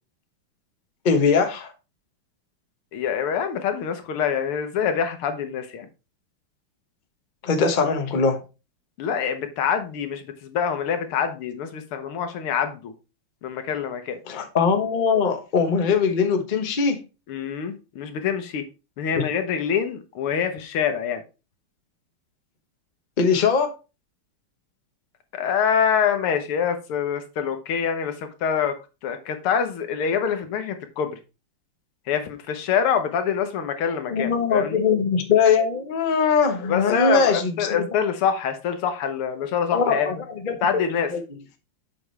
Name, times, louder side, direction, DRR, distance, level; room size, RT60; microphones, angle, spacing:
voice 1, 1.0-1.7 7.4-8.4 14.3-17.0 19.1-19.3 23.2-23.7 34.1-37.8 39.7-40.2 40.4-40.6 41.1-41.2, left 5 dB, 35° left, 0.8 m, -21 dB
voice 2, 2.9-5.9 9.0-12.9 13.4-14.2 17.3-18.7 19.0-21.2 25.3-31.2 32.1-34.8 36.7-40.1 40.6-41.1, left 7 dB, 80° left, 1.9 m, -25 dB
7.7 x 6.0 x 3.2 m
omnidirectional pair, 2.4 m